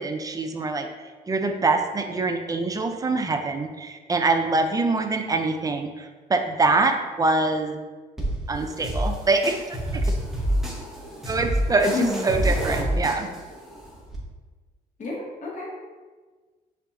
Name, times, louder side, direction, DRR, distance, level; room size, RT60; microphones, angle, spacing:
voice 1, 0.0-7.8 8.5-10.0 11.3-13.3, right 3 dB, 25° right, 6 dB, 0.5 m, -24 dB
sound 1, 8.2-14.2, equal, ahead, 1.0 m, -28 dB
voice 2, 11.9-12.3 15.0-15.8, left 3 dB, 55° left, -3 dB, 1.3 m, -30 dB
6.6 x 2.8 x 2.7 m, 1.4 s
cardioid pair, 100°, 16 cm